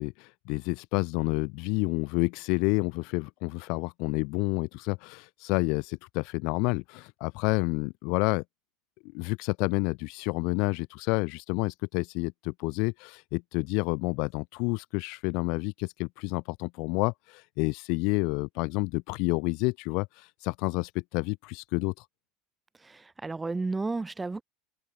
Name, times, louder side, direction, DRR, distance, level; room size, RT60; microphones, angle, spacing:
voice 1, 0.0-8.4 9.1-22.1, left 30 dB, 60° left, 0.5 m, -29 dB
voice 2, 22.8-24.4, right 3 dB, 10° right, 3.4 m, -32 dB
supercardioid pair, 120°, 0 cm